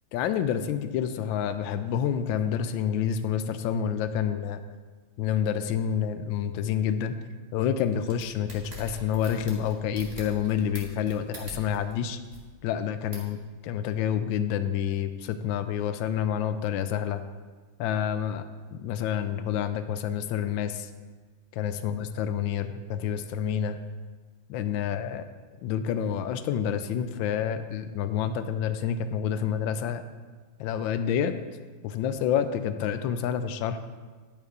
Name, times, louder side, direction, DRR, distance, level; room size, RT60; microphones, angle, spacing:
voice 1, 0.1-4.6 5.2-7.1 7.5-12.2 12.6-13.4 13.6-17.2 17.8-18.4 18.7-20.9 21.5-23.8 24.5-25.2 25.6-30.0 30.6-31.3 31.8-33.8, left 8 dB, 75° left, 11 dB, 1.2 m, -28 dB
sound 1, 7.9-11.9 12.2-12.4 13.1-13.3, right 1 dB, 20° right, 1.4 m, -43 dB
10.5 x 5.7 x 4.6 m, 1.4 s
omnidirectional pair, 2.4 m